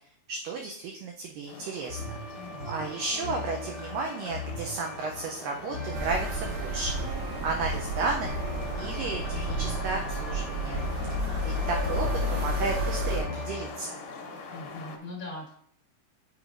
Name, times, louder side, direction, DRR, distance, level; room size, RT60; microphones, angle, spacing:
voice 1, 0.3-2.0 2.7-6.9 7.4-8.4 8.8-10.9 11.4-13.9, right 3 dB, 85° right, 1 dB, 1.9 m, -33 dB
sound 1, 1.5-15.0, left 4 dB, 70° left, 2.2 m, -42 dB
sound 2, 1.9-13.7, left 2 dB, 40° right, 1.2 m, -39 dB
voice 2, 2.3-2.9 14.5-15.5, left 2 dB, 55° left, -5 dB, 0.9 m, -41 dB
sound 3, 5.9-13.2, right 1 dB, 70° right, 3.0 m, -31 dB
9.1 x 4.6 x 2.5 m, 0.62 s
omnidirectional pair, 4.6 m